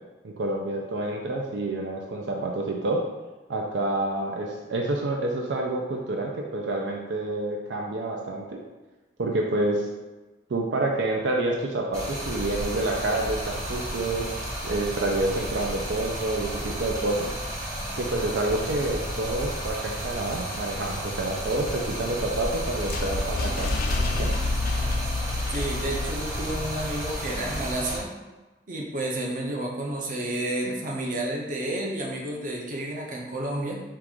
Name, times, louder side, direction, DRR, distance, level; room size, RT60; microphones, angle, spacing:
voice 1, 0.2-3.0 3.5-8.6 9.2-9.9 10.5-14.3 14.6-17.3 18.0-23.7 24.2-24.3, right 2 dB, 85° right, 0 dB, 0.5 m, -28 dB
Stream, 11.9-28.0, equal, 20° right, 1.0 m, -33 dB
sound 1, 22.0-27.1, left 2 dB, 55° left, 0.5 m, -29 dB
voice 2, 25.5-28.1 28.7-33.8, right 1 dB, 50° right, -2 dB, 0.8 m, -31 dB
4.6 x 2.5 x 3.6 m, 1.2 s
head